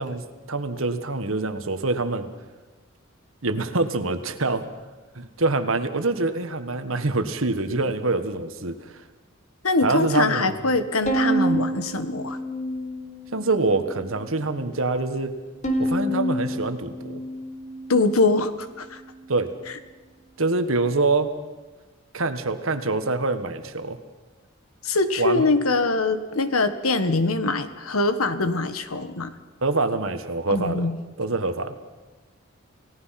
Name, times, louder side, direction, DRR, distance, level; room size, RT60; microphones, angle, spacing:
voice 1, 0.0-2.3 3.4-4.6 5.1-9.0 9.8-10.5 13.3-15.3 15.8-17.2 19.3-19.5 20.4-21.3 22.1-24.0 25.2-25.5 29.6-30.9 31.2-31.7, right 3 dB, 75° right, 9 dB, 1.5 m, -25 dB
voice 2, 9.6-12.4 17.9-19.0 24.8-29.3 30.5-31.0, left 3 dB, 85° left, 11 dB, 1.5 m, -23 dB
Bowed string instrument, 11.1-13.4 13.9-14.7 15.6-18.2, right 1 dB, 35° left, 2.8 m, -28 dB
29.0 x 17.5 x 5.9 m, 1.2 s
head